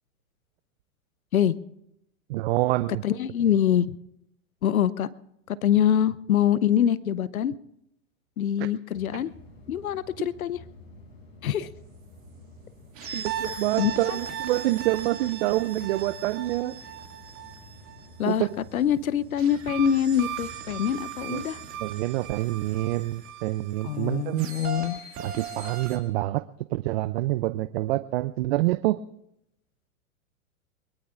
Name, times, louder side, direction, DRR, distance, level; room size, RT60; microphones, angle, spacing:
voice 1, 2.3-3.0 8.6-8.7 10.2-10.3 13.1-16.7 18.2-18.5 21.3-21.4 21.8-24.5 25.2-26.4 26.7-29.0, right 17 dB, 50° right, 15 dB, 0.5 m, -27 dB
voice 2, 3.0-3.9 4.6-5.1 5.5-7.5 8.4-9.3 9.7-10.6 11.4-11.7 13.0-13.2 13.8-14.2 18.2-18.5 18.7-21.6 23.8-25.0, left 9 dB, 85° left, 19 dB, 0.7 m, -24 dB
sound 1, 8.9-23.1, left 1 dB, 60° left, 7.3 m, -50 dB
sound 2, 13.0-18.5 19.4-26.0, right 7 dB, 30° right, 2.3 m, -38 dB
22.5 x 22.0 x 2.5 m, 0.82 s
hypercardioid pair, 115°, 41 cm